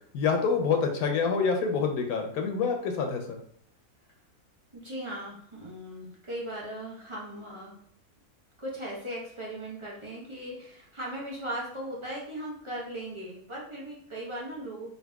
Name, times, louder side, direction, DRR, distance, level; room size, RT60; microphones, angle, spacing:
voice 1, 0.1-3.4, left 5 dB, 90° left, 4 dB, 1.1 m, -27 dB
voice 2, 4.7-7.8 8.6-14.9, right 1 dB, 25° right, -6 dB, 0.7 m, -38 dB
3.9 x 2.5 x 2.2 m, 0.64 s
omnidirectional pair, 1.5 m